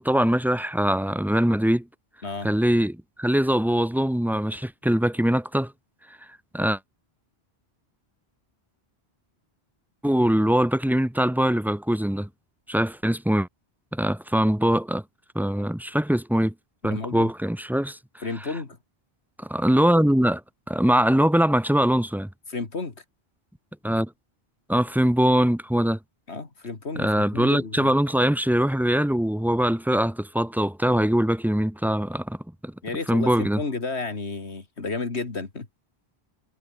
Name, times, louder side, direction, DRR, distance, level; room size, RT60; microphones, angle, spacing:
voice 1, 0.0-1.8 2.4-5.7 6.5-6.8 10.0-12.3 12.7-13.5 13.9-15.0 15.3-16.5 16.8-18.0 19.4-20.4 20.7-22.3 23.8-24.1 24.7-26.0 27.0-32.4 32.6-32.7 33.1-33.6, equal, 5° right, 0.4 m, -22 dB
voice 2, 16.8-17.3 18.2-18.8 22.5-23.0 26.3-27.9 32.8-35.7, left 3 dB, 85° left, 2.8 m, -32 dB
omnidirectional pair, 1.1 m